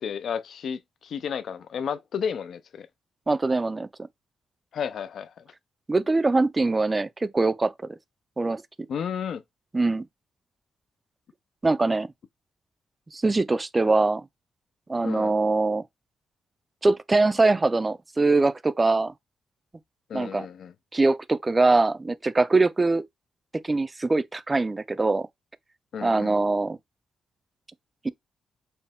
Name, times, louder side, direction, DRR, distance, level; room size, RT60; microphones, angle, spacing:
voice 1, 0.0-2.9 4.7-5.3 8.9-9.4 15.0-15.3 20.1-20.7 25.9-26.4, left 7 dB, 70° left, 0.4 m, -32 dB
voice 2, 3.3-3.9 5.9-7.7 8.4-8.6 9.7-10.1 11.6-12.1 13.1-14.3 14.9-15.8 16.8-19.1 20.1-20.5 20.9-23.0 23.6-25.3 26.0-26.8 28.0-28.1, right 3 dB, 20° right, 0.3 m, -22 dB
4.3 x 2.0 x 3.5 m
cardioid pair, 105°, 0 cm